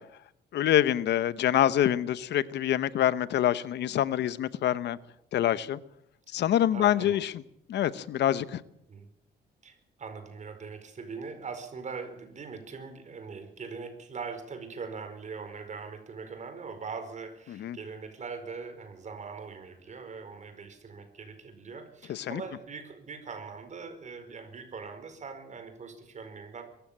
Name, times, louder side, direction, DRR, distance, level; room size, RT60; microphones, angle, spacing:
voice 1, 0.5-5.0 5.3-5.8 6.3-7.3 7.7-8.6 17.6-17.8 22.1-22.4, left 11 dB, 75° left, 0.9 m, -26 dB
voice 2, 6.7-7.2 8.9-9.1 9.6-26.6, right 5 dB, 40° right, 4.7 m, -41 dB
23.0 x 14.0 x 8.8 m
cardioid pair, 115°, 18 cm